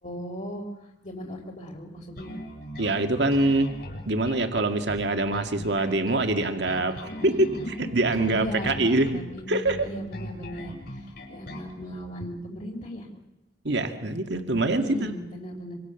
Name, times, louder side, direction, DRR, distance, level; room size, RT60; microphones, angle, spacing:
voice 1, 0.0-2.3 7.2-7.7 8.3-13.1 14.7-15.8, equal, 40° left, 0 dB, 3.7 m, -37 dB
Bass guitar, 2.2-11.7, equal, 55° left, 7.0 m, -40 dB
voice 2, 2.8-3.7 4.1-7.0 7.2-7.3 7.8-9.2 9.5-9.9 13.6-15.1, right 2 dB, 65° right, 6 dB, 2.0 m, -24 dB
26.0 x 26.0 x 7.0 m, 0.99 s
head